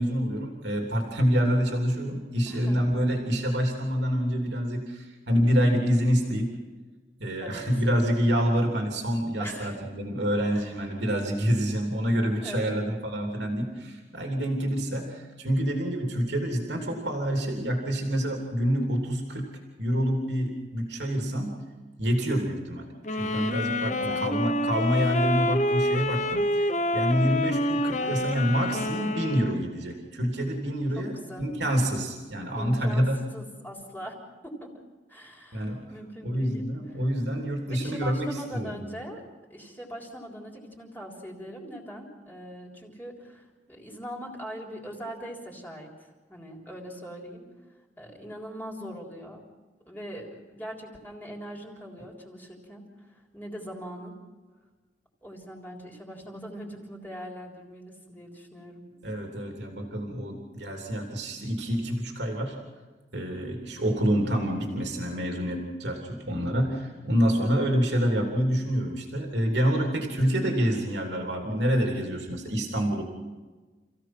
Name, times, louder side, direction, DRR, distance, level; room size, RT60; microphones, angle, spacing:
voice 1, 0.0-6.5 7.2-19.5 19.8-21.5 22.0-33.2 35.5-35.8 36.2-38.8 59.0-62.6 63.1-73.0, equal, 85° right, 2 dB, 3.2 m, -27 dB
voice 2, 2.5-2.8 7.4-7.7 9.4-9.8 10.5-10.8 12.4-12.8 23.8-24.2 28.0-28.3 31.0-31.5 32.6-33.1 33.3-34.7 35.1-36.6 37.6-39.2 39.5-47.5 48.0-49.5 49.9-54.1 55.2-58.9 67.4-67.7, equal, 10° left, -1 dB, 3.7 m, -41 dB
sound 1, 23.0-29.6, left 1 dB, 45° left, 1.1 m, -27 dB
28.0 x 16.0 x 6.1 m, 1.3 s
head